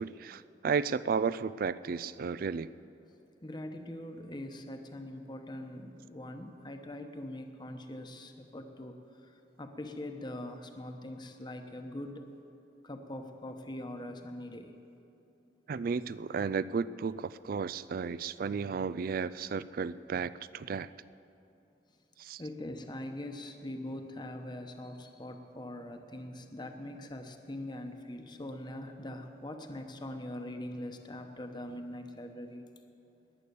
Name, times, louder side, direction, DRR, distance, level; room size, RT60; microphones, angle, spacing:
voice 1, 0.0-2.7 15.7-20.9 22.2-22.4, right 5 dB, 55° right, 17 dB, 0.4 m, -33 dB
voice 2, 3.4-12.3 12.8-14.7 22.4-32.6, left 1 dB, 25° left, 5 dB, 1.0 m, -42 dB
21.0 x 8.4 x 6.9 m, 2.7 s
head